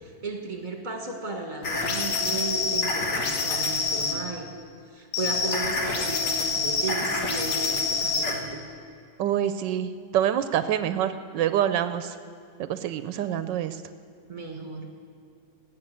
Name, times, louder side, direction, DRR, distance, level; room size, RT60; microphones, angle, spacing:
voice 1, 0.0-4.5 4.9-8.6 14.3-14.9, right 3 dB, 30° right, 2 dB, 1.4 m, -34 dB
sound 1, 1.6-4.2 5.1-8.4, left 4 dB, 75° left, 2.0 m, -27 dB
voice 2, 9.2-12.1 12.7-13.8, right 10 dB, 80° right, 11 dB, 1.2 m, -26 dB
17.5 x 6.5 x 7.9 m, 2.5 s
omnidirectional pair, 1.9 m